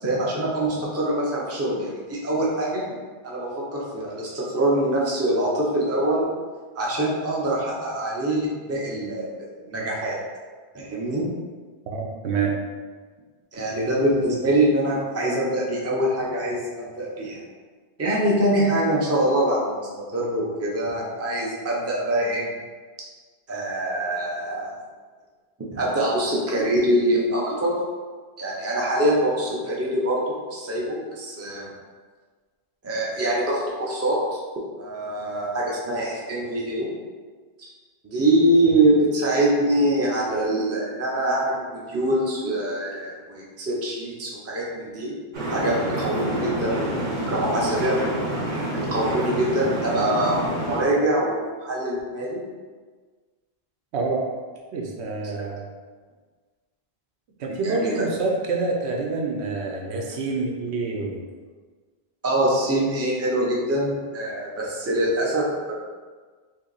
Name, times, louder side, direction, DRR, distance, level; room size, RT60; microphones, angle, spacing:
voice 1, 0.0-2.8 3.2-6.3 6.7-10.2 10.7-11.3 13.5-17.4 18.0-22.5 23.0-23.1 23.5-24.7 25.7-27.7 28.4-31.7 32.8-34.4 34.8-36.9 37.6-37.7 38.0-45.1 45.5-46.9 47.3-48.0 48.9-52.4 57.6-57.9 62.2-65.7, right 1 dB, 20° right, -4 dB, 0.5 m, -24 dB
voice 2, 11.9-12.6 53.9-54.2 54.7-55.6 57.4-61.2, right 3 dB, 80° right, 0 dB, 0.9 m, -27 dB
sound 1, 45.3-50.8, right 1 dB, 50° right, 0.7 m, -27 dB
2.9 x 2.7 x 3.9 m, 1.5 s
omnidirectional pair, 1.1 m